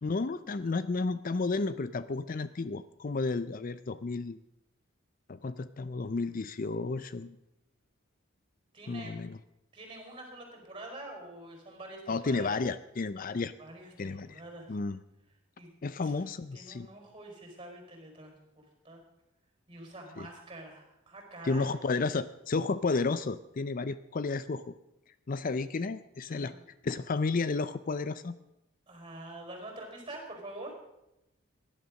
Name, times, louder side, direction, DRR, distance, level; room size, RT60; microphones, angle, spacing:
voice 1, 0.0-4.4 5.3-7.4 8.9-9.4 12.1-13.5 14.0-14.4 14.7-15.0 15.8-16.9 20.2-20.3 21.4-24.7 25.3-26.5 26.8-28.3, left 3 dB, 40° left, 15 dB, 0.5 m, -32 dB
voice 2, 8.7-9.1 9.7-12.5 13.6-14.8 15.6-15.7 16.0-16.2 16.5-19.0 19.7-21.7 26.3-26.6 28.9-30.7, right 1 dB, 25° right, 3 dB, 5.0 m, -46 dB
17.5 x 11.0 x 6.4 m, 0.89 s
head